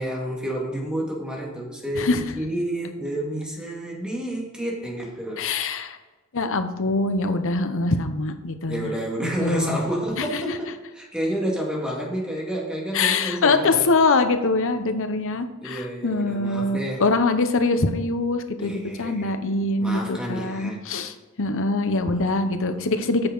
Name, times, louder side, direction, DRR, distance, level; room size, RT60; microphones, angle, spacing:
voice 1, 0.0-5.4 8.7-13.8 15.6-17.0 18.6-19.3 19.8-20.8 22.0-22.8, right 1 dB, 5° right, -3 dB, 2.1 m, -30 dB
voice 2, 5.4-6.0 6.3-9.0 9.2-9.8 10.2-10.6 12.9-23.3, left 3 dB, 65° left, 8 dB, 0.8 m, -23 dB
8.8 x 6.4 x 3.9 m, 1.2 s
head